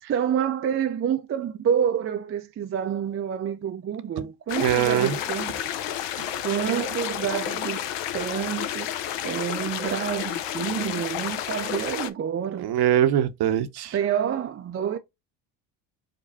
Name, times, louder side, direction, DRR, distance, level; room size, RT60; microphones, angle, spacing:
voice 1, 0.1-5.6 6.4-7.8 8.1-8.9 9.2-12.7 13.9-15.0, right 8 dB, 30° right, 0.5 m, -28 dB
sound 1, 4.5-12.1, left 11 dB, 60° left, 0.7 m, -31 dB
voice 2, 4.6-5.1 12.6-13.9, right 11 dB, 50° right, 0.8 m, -22 dB
5.0 x 2.3 x 4.0 m
hypercardioid pair, 65°, 49 cm